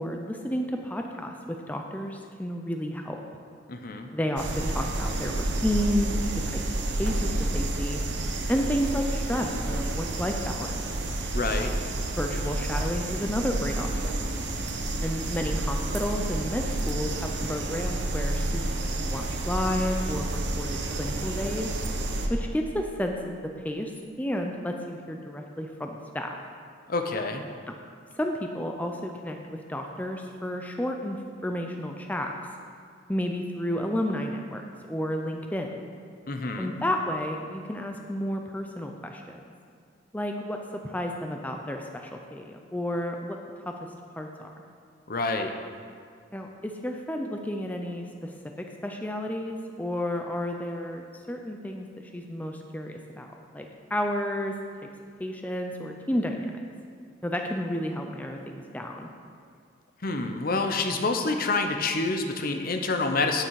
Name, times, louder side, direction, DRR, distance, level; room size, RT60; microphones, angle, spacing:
voice 1, 0.0-3.2 4.1-6.2 6.4-6.6 7.0-8.0 8.5-10.8 12.2-14.1 15.0-21.7 22.3-23.9 24.2-26.4 28.2-32.4 33.1-35.8 36.6-39.4 40.1-40.6 40.8-43.4 43.7-43.8 44.2-44.5 46.3-48.3 48.8-53.3 53.5-54.5 55.2-56.6 57.2-59.1, equal, 10° left, 2 dB, 0.5 m, -31 dB
voice 2, 3.7-4.1 11.3-11.7 26.9-27.4 36.3-36.7 45.1-45.5 60.0-63.4, left 3 dB, 50° left, 5 dB, 0.8 m, -27 dB
sound 1, 4.4-22.3, right 1 dB, 65° right, 1.0 m, -30 dB
9.3 x 9.1 x 4.8 m, 2.2 s
head